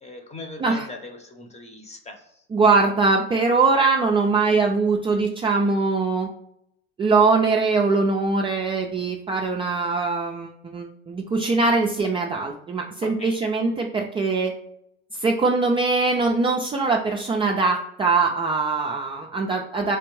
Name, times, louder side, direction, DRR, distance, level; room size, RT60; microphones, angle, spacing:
voice 1, 0.0-2.4 13.2-13.4, left 2 dB, 20° left, 5 dB, 0.8 m, -40 dB
voice 2, 2.5-6.3 7.0-14.5 15.1-20.0, right 3 dB, 20° right, 0 dB, 0.4 m, -22 dB
3.4 x 3.3 x 3.1 m, 0.77 s
hypercardioid pair, 90°, 31 cm